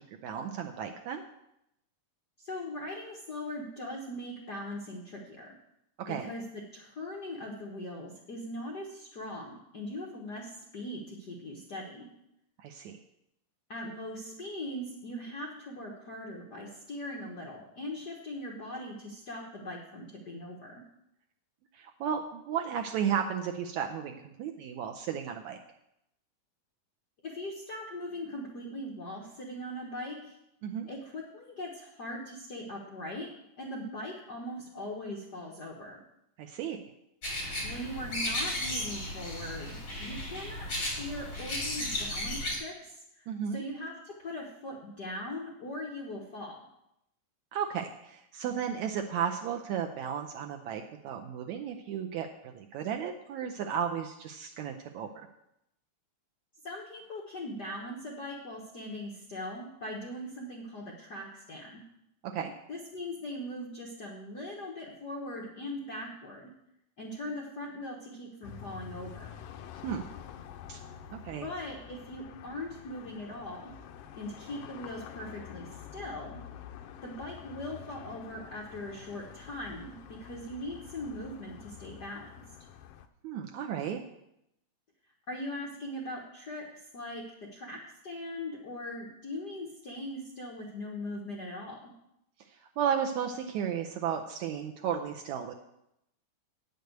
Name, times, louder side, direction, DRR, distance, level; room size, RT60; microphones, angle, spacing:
voice 1, 0.2-1.2 6.0-6.3 12.6-13.0 21.7-25.6 30.6-30.9 36.4-36.8 43.3-43.6 47.5-55.3 62.2-62.5 69.8-70.1 70.7-70.8 71.1-71.5 83.2-84.0 92.8-95.5, right 8 dB, 80° right, 4 dB, 1.7 m, -34 dB
voice 2, 2.4-5.6 6.1-12.1 13.7-20.7 27.2-30.4 30.9-33.3 33.6-36.0 37.6-46.6 56.6-61.8 62.7-66.5 67.0-69.3 71.4-73.7 74.1-76.4 77.0-82.3 85.3-87.8 88.0-91.9, left 1 dB, 55° left, -2 dB, 1.1 m, -40 dB
sound 1, 37.2-42.6, left 1 dB, 35° left, 4.3 m, -35 dB
sound 2, 68.4-83.1, left 9 dB, 85° left, 2.3 m, -48 dB
9.2 x 6.8 x 7.9 m, 0.82 s
omnidirectional pair, 3.8 m